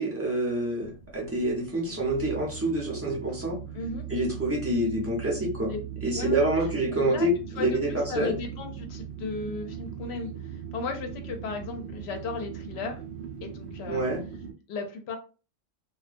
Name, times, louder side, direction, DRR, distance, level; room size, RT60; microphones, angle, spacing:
voice 1, 0.0-3.6 4.1-5.7 6.0-8.3 13.9-14.2, right 1 dB, 20° right, -3 dB, 0.4 m, -27 dB
sound 1, 0.8-14.5, right 8 dB, 65° right, 0.7 m, -39 dB
voice 2, 6.1-6.5 6.9-7.3 7.6-13.0 13.4-14.0 14.7-15.2, left 4 dB, 65° left, 5 dB, 0.7 m, -35 dB
2.2 x 2.2 x 2.4 m, 0.34 s
omnidirectional pair, 1.3 m